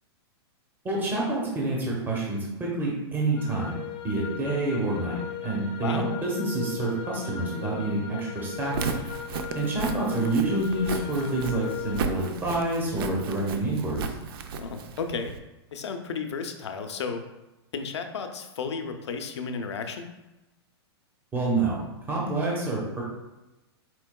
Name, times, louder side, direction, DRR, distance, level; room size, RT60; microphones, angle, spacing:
voice 1, 0.8-8.9 9.5-14.1 21.3-23.0, right 2 dB, 15° right, -3 dB, 1.0 m, -28 dB
sound 1, 3.4-12.0, left 9 dB, 30° left, 0.6 m, -38 dB
Walk footsteps, 8.6-15.4, right 5 dB, 60° right, 0.5 m, -34 dB
voice 2, 14.6-15.3 15.7-17.2 17.7-20.1, left 5 dB, 85° left, 6 dB, 0.6 m, -33 dB
4.4 x 4.4 x 2.2 m, 1.0 s
hypercardioid pair, 140°, 14 cm